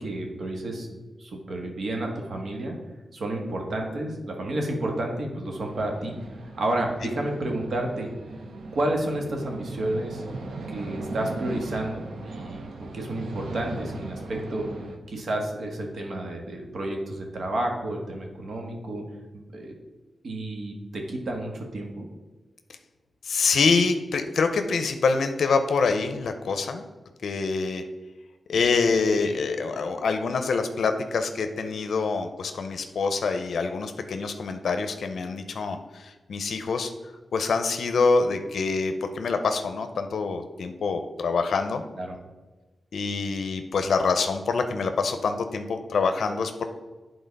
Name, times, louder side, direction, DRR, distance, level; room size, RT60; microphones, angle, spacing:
voice 1, 0.0-2.8 3.1-6.2 6.6-8.1 8.7-10.2 10.7-14.7 15.1-19.0 19.3-19.7 20.2-22.0 41.9-42.2, right 1 dB, 70° right, 1 dB, 1.5 m, -31 dB
sound 1, 5.5-15.0, right 2 dB, 90° right, 0.8 m, -38 dB
voice 2, 23.2-26.8 27.2-27.8 28.5-36.9 37.3-41.8 42.9-46.7, left 4 dB, 85° left, 7 dB, 0.5 m, -25 dB
8.1 x 3.9 x 5.2 m, 1.2 s
wide cardioid pair, 85°, 0 cm